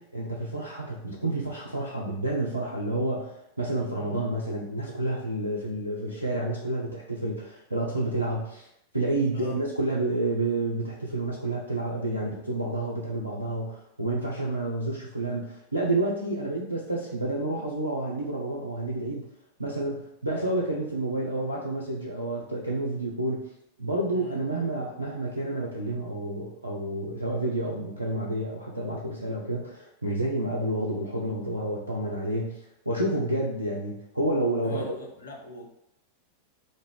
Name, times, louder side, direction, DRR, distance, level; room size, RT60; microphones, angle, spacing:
voice 1, 0.0-8.7 8.9-19.3 19.6-23.5 23.8-35.0, right 1 dB, 85° right, -4 dB, 0.4 m, -29 dB
voice 2, 24.1-24.6 34.6-35.7, left 2 dB, 70° left, -1 dB, 0.6 m, -42 dB
2.5 x 2.1 x 3.2 m, 0.78 s
figure-of-eight pair, 90°, 0 cm